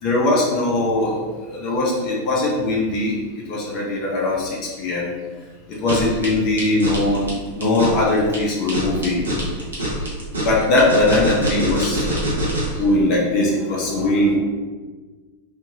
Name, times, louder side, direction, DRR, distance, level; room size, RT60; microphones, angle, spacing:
voice 1, 0.0-1.2 1.4-3.1 3.5-5.1 5.7-9.3 10.4-12.1 12.8-14.4, left 2 dB, 35° left, -4 dB, 0.9 m, -20 dB
sound 1, 5.7-12.8, right 1 dB, 75° right, 0.9 m, -25 dB
3.5 x 2.8 x 2.8 m, 1.4 s
figure-of-eight pair, 90°, 0 cm